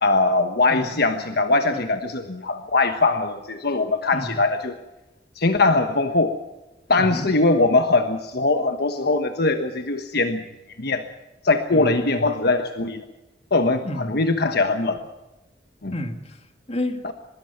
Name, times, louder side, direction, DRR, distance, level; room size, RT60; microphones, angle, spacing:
voice 1, 0.0-4.8 5.4-6.3 6.9-10.4 10.8-11.0 11.4-13.0 13.5-15.0 15.8-15.9 17.0-17.1, left 3 dB, 60° left, 7 dB, 1.3 m, -21 dB
voice 2, 7.0-7.3 11.7-12.4 13.8-14.2 15.9-17.1, left 1 dB, 35° left, 6 dB, 2.5 m, -31 dB
23.5 x 21.0 x 5.9 m, 1.0 s
head